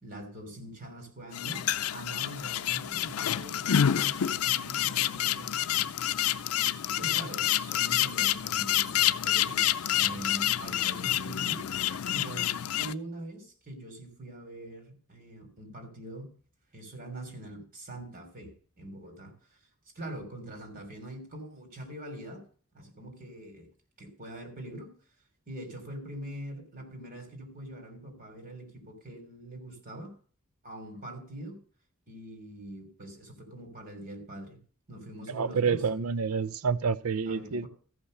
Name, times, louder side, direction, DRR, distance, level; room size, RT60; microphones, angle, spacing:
voice 1, 0.0-6.0 6.9-16.4 16.7-19.6 19.9-22.4 22.7-23.7 24.0-24.9 25.5-30.1 30.6-31.6 32.1-34.6 34.9-35.8 37.2-37.7, right 1 dB, 45° right, 3.2 m, -43 dB
sound 1, 1.3-12.9, left 11 dB, 85° left, 0.5 m, -28 dB
voice 2, 35.3-37.7, right 5 dB, 80° right, 0.5 m, -28 dB
14.5 x 5.6 x 6.5 m
head